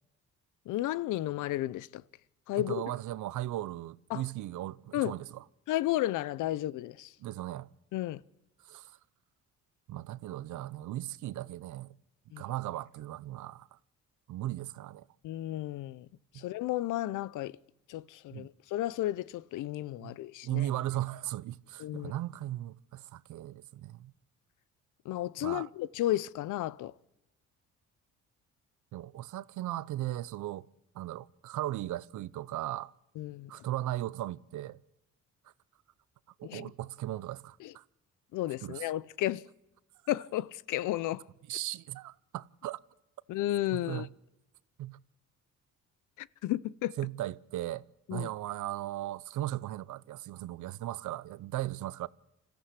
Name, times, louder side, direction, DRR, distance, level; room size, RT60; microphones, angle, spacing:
voice 1, 0.7-2.0 2.5-2.8 4.1-4.2 4.9-5.2 5.7-7.1 7.9-8.2 12.3-12.4 15.2-16.1 16.3-17.6 17.9-20.7 21.8-22.1 25.0-26.9 33.2-33.5 36.4-36.7 37.6-37.7 38.3-39.4 40.1-41.2 43.3-44.1 46.2-47.0 48.1-48.3, left 15 dB, 85° left, 0.7 m, -33 dB
voice 2, 2.6-5.4 7.2-7.7 8.7-8.9 9.9-11.9 12.4-13.8 14.3-15.1 16.3-16.4 18.3-18.5 20.0-20.1 20.4-24.1 25.4-25.7 28.9-30.7 30.9-32.9 33.5-34.8 36.4-37.8 38.6-38.9 41.5-42.8 43.7-44.1 44.8-45.0 47.0-47.8 48.1-52.1, right 14 dB, 75° right, 0.8 m, -37 dB
26.0 x 14.5 x 8.2 m
cardioid pair, 90°, 30 cm